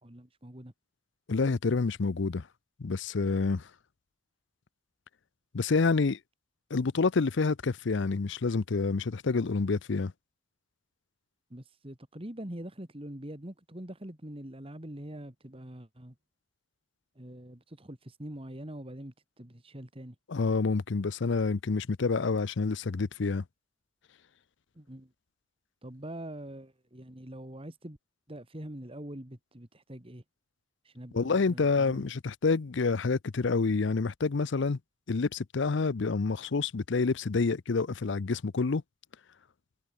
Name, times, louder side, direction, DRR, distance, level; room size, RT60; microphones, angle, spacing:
voice 1, 0.0-0.7 11.5-16.1 17.2-20.2 24.8-25.1 25.8-28.0 28.3-30.2 30.8-32.1, right 1 dB, 25° right, 2.2 m, -44 dB
voice 2, 1.3-2.4 2.8-3.6 5.5-6.2 6.7-10.1 20.3-23.4 31.1-34.8 35.1-38.8, left 4 dB, 60° left, 0.6 m, -28 dB
head